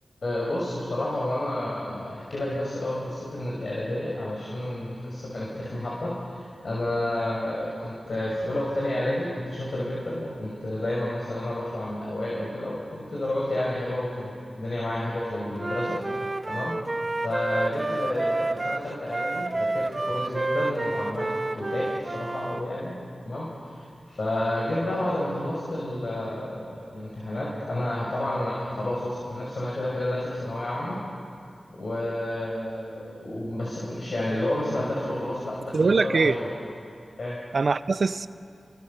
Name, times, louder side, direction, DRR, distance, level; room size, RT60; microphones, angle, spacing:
voice 1, 0.2-16.0 16.5-16.8 17.2-23.0 23.2-31.0 31.7-36.5 37.2-37.4, left 1 dB, 70° left, -5 dB, 5.9 m, -30 dB
Wind instrument woodwind instrument, 15.6-22.6, right 2 dB, 40° right, 0.9 m, -29 dB
voice 2, 35.7-36.4 37.5-38.3, right 4 dB, 70° right, 14 dB, 0.7 m, -22 dB
29.0 x 25.0 x 7.0 m, 2.4 s
cardioid pair, 50°, 0 cm